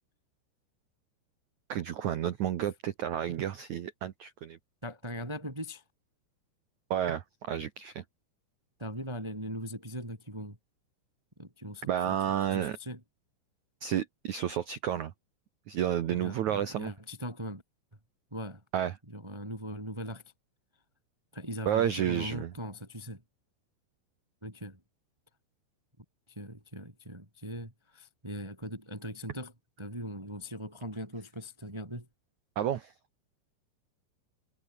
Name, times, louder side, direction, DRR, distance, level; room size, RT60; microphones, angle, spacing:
voice 1, 1.7-4.6 6.9-8.0 11.9-12.8 13.8-15.1 15.7-16.9 18.7-18.9 21.7-22.5 32.6-32.9, right 10 dB, 70° right, 1.8 m, -31 dB
voice 2, 4.8-5.8 8.8-10.6 11.4-12.2 12.4-13.0 16.1-17.6 18.3-18.6 19.1-20.3 21.3-23.2 24.4-24.8 26.0-29.5 29.8-32.1, equal, 5° right, 2.8 m, -40 dB
omnidirectional pair, 5.1 m